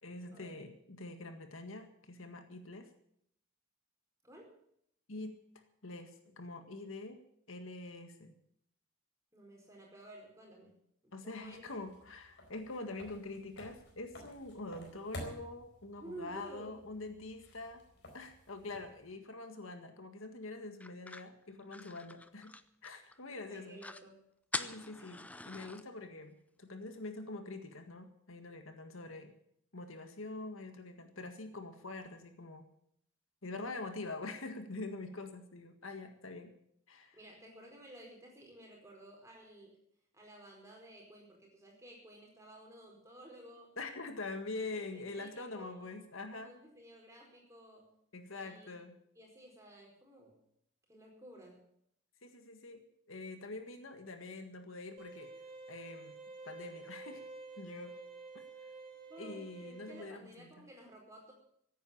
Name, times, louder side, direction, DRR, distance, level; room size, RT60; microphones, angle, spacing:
voice 1, 0.0-2.9 5.1-5.4 5.8-7.2 7.5-8.3 11.1-17.8 18.1-22.5 22.8-23.8 24.6-29.3 29.7-32.7 33.4-36.5 36.9-37.2 43.8-46.5 48.1-48.9 52.2-52.8 53.1-55.3 55.7-56.1 56.4-57.2 57.6-57.9 59.2-60.7, left 2 dB, 70° left, 6 dB, 1.8 m, -45 dB
voice 2, 4.2-4.5 9.3-10.7 11.0-11.7 16.0-16.7 23.5-24.2 25.0-25.1 37.1-39.8 40.1-43.8 44.8-47.9 48.3-48.7 49.1-50.4 50.9-51.6 59.1-61.3, right 1 dB, 15° right, 0 dB, 4.7 m, -54 dB
sound 1, 11.4-19.1, left 1 dB, 55° left, 4.3 m, -52 dB
sound 2, 20.8-23.2 23.5-23.6 23.8-24.1 24.5-25.8, left 2 dB, 5° left, 0.5 m, -43 dB
sound 3, 55.0-60.0, right 3 dB, 45° right, 2.8 m, -50 dB
16.0 x 9.3 x 8.7 m, 0.71 s
head